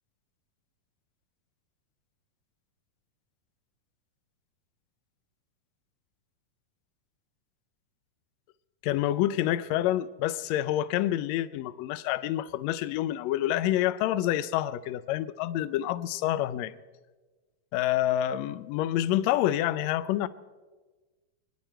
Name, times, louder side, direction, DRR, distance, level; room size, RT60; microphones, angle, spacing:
voice 1, 8.8-16.7 17.7-20.3, left 13 dB, 80° left, 1.7 m, -27 dB
26.5 x 10.5 x 4.4 m
omnidirectional pair, 3.5 m